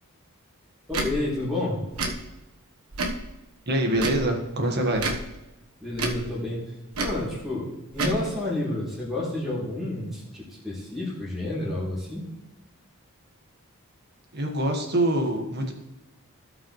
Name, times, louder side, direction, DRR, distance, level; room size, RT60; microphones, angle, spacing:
voice 1, 0.9-1.8 5.8-6.6 7.0-12.2, left 1 dB, ahead, -8 dB, 3.4 m, -30 dB
Tick / Tick-tock, 0.9-1.1 1.9-2.1 2.9-3.2 3.9-4.2 4.9-5.2 5.9-6.2 6.9-7.2 7.9-8.2, right 3 dB, 75° right, 1.3 m, -29 dB
voice 2, 3.7-5.1 14.3-15.7, right 1 dB, 50° right, 2 dB, 1.7 m, -25 dB
17.0 x 5.9 x 3.2 m, 1.0 s
head